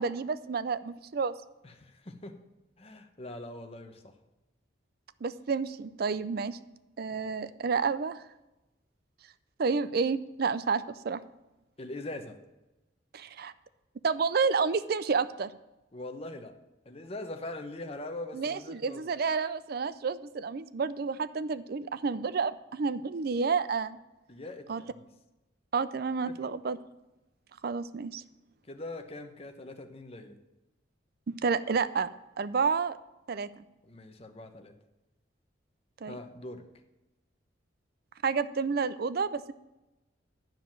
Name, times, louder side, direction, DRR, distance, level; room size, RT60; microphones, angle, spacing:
voice 1, 0.0-1.3 5.2-6.6 7.0-8.2 9.6-11.2 13.1-13.5 14.0-15.5 18.3-24.0 24.7-24.8 25.7-26.8 27.6-28.2 31.4-32.1 32.4-33.0 33.3-33.6 36.0-36.2 38.2-39.5, right 5 dB, 55° right, 14 dB, 0.4 m, -30 dB
voice 2, 1.6-2.4 2.8-4.2 11.8-12.4 15.9-16.6 16.8-19.0 24.3-25.1 26.3-26.5 28.7-30.4 33.8-34.7 36.1-36.7, left 2 dB, 30° left, 6 dB, 0.9 m, -42 dB
10.5 x 5.1 x 7.2 m, 1.0 s
head